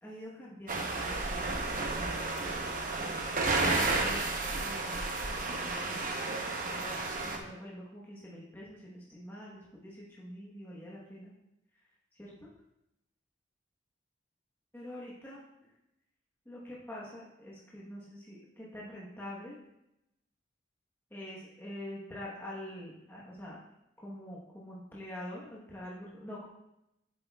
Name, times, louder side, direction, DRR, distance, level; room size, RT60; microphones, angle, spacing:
voice 1, 0.0-2.7 3.0-3.1 3.7-6.2 6.6-7.0 7.2-11.3 12.2-12.5 14.7-15.5 16.4-19.6 21.1-23.6 24.0-26.5, left 1 dB, 10° left, -6 dB, 1.1 m, -46 dB
sound 1, 0.7-7.4, right 3 dB, 45° right, 0.9 m, -32 dB
8.6 x 7.4 x 2.3 m, 0.86 s
head